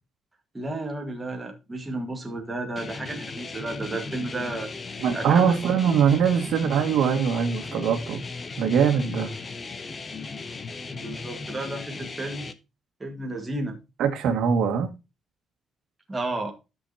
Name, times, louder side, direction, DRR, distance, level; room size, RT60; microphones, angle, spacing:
voice 1, 0.5-4.7 5.1-5.5 10.9-12.5 13.0-13.8 16.1-16.5, right 2 dB, 10° right, 1.7 m, -32 dB
sound 1, 2.8-12.5, left 4 dB, 25° left, 0.7 m, -37 dB
voice 2, 5.0-8.2 8.6-9.3 14.0-14.9, right 7 dB, 70° right, 1.9 m, -22 dB
14.0 x 6.4 x 2.8 m
cardioid pair, 180°, 0 cm